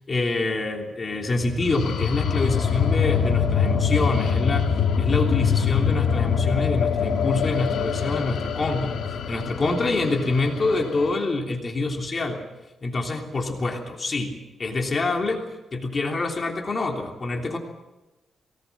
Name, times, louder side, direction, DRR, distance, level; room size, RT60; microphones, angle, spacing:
voice 1, 0.1-4.7 5.0-12.4 12.8-15.4 15.7-17.6, left 3 dB, 35° left, 2 dB, 3.2 m, -26 dB
sound 1, 1.4-11.1, left 6 dB, 75° left, 2.7 m, -24 dB
23.0 x 19.0 x 7.3 m, 1.0 s
cardioid pair, 105°, 0 cm